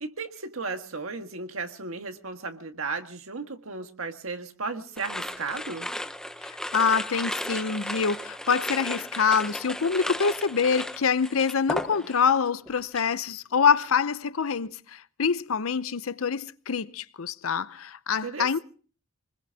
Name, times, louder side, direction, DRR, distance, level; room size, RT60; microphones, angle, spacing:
voice 1, 0.0-5.9 18.2-18.6, right 4 dB, 85° right, 1.7 m, -35 dB
sound 1, 5.0-12.4 12.7-13.1, left 1 dB, 5° left, 0.8 m, -35 dB
voice 2, 6.7-18.6, left 6 dB, 85° left, 0.7 m, -25 dB
25.0 x 20.5 x 2.8 m
head